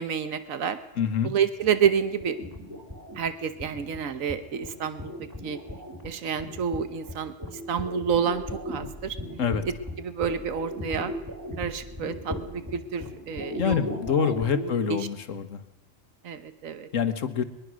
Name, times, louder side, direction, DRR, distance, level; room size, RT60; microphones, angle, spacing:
voice 1, 0.0-0.8 1.2-2.4 3.2-5.1 5.4-5.6 6.0-7.3 7.7-9.2 9.6-11.1 11.6-15.0 16.2-16.9, right 7 dB, 85° right, 11 dB, 1.4 m, -29 dB
voice 2, 1.0-1.3 9.4-9.6 13.6-15.6 16.9-17.4, left 7 dB, 75° left, 10 dB, 1.6 m, -26 dB
sound 1, 1.6-14.7, left 1 dB, 15° right, 3.0 m, -38 dB
22.0 x 21.0 x 6.3 m, 1.0 s
omnidirectional pair, 1.3 m